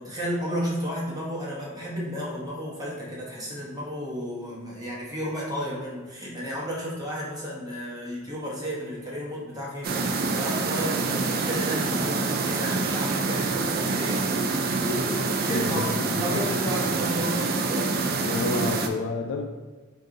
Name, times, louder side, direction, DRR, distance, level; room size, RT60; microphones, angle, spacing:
voice 1, 0.0-14.3 14.8-18.0, equal, 20° right, -5 dB, 1.0 m, -33 dB
sound 1, 9.8-18.9, right 3 dB, 50° right, 0.4 m, -26 dB
voice 2, 15.5-16.0 16.3-16.4 17.2-17.3 18.2-19.5, left 3 dB, 80° left, 3 dB, 0.3 m, -30 dB
4.0 x 2.6 x 3.7 m, 1.3 s
head